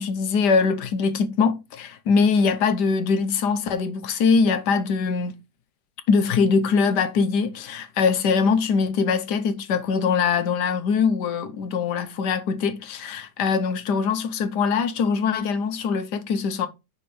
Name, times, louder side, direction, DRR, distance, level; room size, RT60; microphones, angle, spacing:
voice 1, 0.0-5.3 6.1-16.7, left 5 dB, 70° left, 1.4 m, -22 dB
5.5 x 4.3 x 4.8 m
omnidirectional pair, 2.0 m